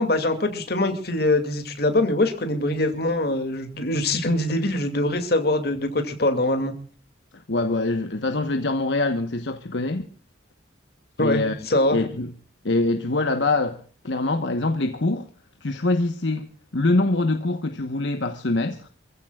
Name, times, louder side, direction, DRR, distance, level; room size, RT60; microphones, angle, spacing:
voice 1, 0.0-6.7 11.2-12.0, left 2 dB, 55° left, 2.5 m, -23 dB
voice 2, 7.3-10.1 11.2-11.5 11.9-12.3 12.6-15.3 15.6-18.9, left 2 dB, 75° left, 1.2 m, -24 dB
27.0 x 15.5 x 2.4 m
head